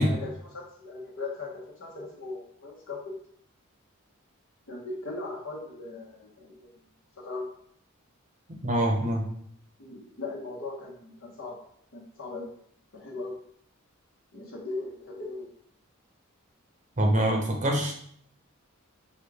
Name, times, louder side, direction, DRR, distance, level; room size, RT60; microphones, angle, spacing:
voice 1, 0.0-3.1 4.7-6.8 7.2-7.5 9.8-11.6 11.9-12.5 12.9-13.3 14.3-15.5, left 3 dB, 65° left, -3 dB, 1.4 m, -38 dB
voice 2, 8.6-9.2 17.0-17.9, right 1 dB, 35° right, 2 dB, 0.8 m, -24 dB
6.3 x 2.5 x 3.4 m, 0.64 s
head